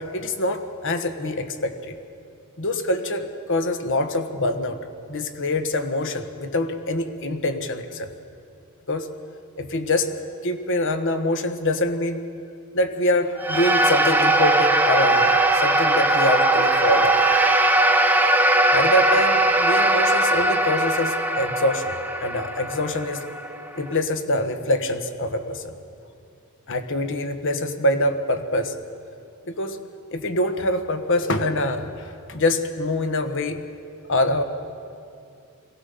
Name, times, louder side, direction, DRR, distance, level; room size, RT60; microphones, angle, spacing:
voice 1, 0.0-2.0 2.6-4.8 5.1-8.1 8.9-9.1 9.6-10.1 10.4-12.2 12.7-17.2 18.7-21.9 22.2-23.3 23.7-25.7 26.7-28.8 29.4-29.8 30.1-33.6 34.1-34.4, left 1 dB, 60° left, 8 dB, 1.3 m, -25 dB
sound 1, 13.4-23.9, right 1 dB, 10° right, 0.9 m, -20 dB
22.5 x 18.0 x 6.8 m, 2.5 s
head